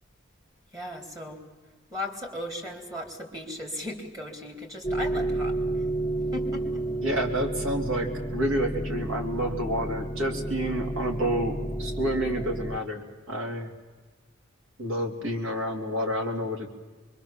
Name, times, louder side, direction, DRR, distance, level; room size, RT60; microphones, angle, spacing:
voice 1, 0.7-1.4 1.9-5.8 6.3-6.8, left 1 dB, 20° right, 3 dB, 3.5 m, -37 dB
sound 1, 4.8-12.8, right 1 dB, 15° left, 0.7 m, -31 dB
voice 2, 7.0-13.7 14.8-16.7, equal, 85° right, 3 dB, 3.2 m, -29 dB
24.5 x 23.0 x 7.3 m, 1.3 s
head